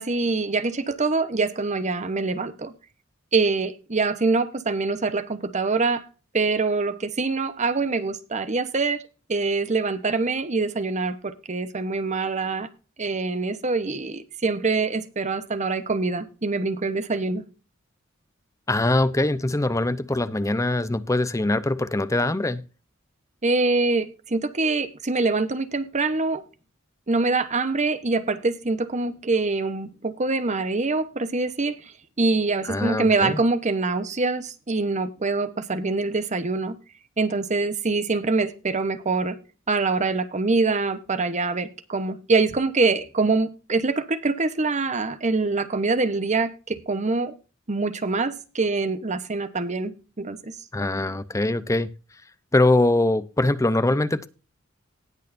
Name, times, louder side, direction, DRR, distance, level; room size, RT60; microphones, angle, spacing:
voice 1, 0.0-2.7 3.3-6.1 6.3-9.0 9.3-12.7 13.0-17.4 23.4-26.4 27.1-31.7 32.2-36.8 37.2-39.4 39.7-47.3 47.7-50.5, right 3 dB, 35° right, 1.0 m, -24 dB
voice 2, 18.7-22.6 32.6-33.4 50.7-51.9 52.5-54.3, left 2 dB, 15° left, 0.7 m, -22 dB
19.0 x 6.5 x 2.6 m
head